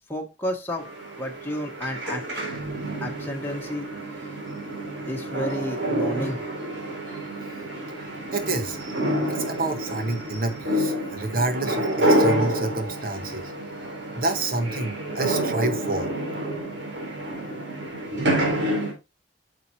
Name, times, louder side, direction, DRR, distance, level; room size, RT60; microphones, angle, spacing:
voice 1, 0.1-0.9 1.2-2.4 3.0-3.9 5.0-6.4, left 1 dB, 10° left, 1.3 m, -31 dB
sound 1, 0.8-18.9, right 1 dB, 70° right, 3.7 m, -28 dB
voice 2, 8.3-8.8 9.3-13.5 14.1-16.1, right 2 dB, 50° right, 1.3 m, -28 dB
8.9 x 6.4 x 2.8 m
head